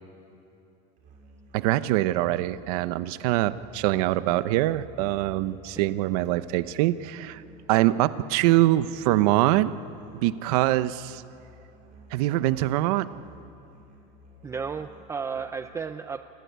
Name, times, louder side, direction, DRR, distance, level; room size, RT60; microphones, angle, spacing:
Musical instrument, 1.0-15.7, equal, 45° right, 6.8 m, -53 dB
voice 1, 1.5-7.4 7.7-9.7 10.2-11.2 12.1-13.1, right 15 dB, 75° right, 13 dB, 1.0 m, -24 dB
voice 2, 14.4-16.2, right 5 dB, 15° right, 9 dB, 0.6 m, -33 dB
28.0 x 22.0 x 9.6 m, 2.7 s
cardioid pair, 155°, 20 cm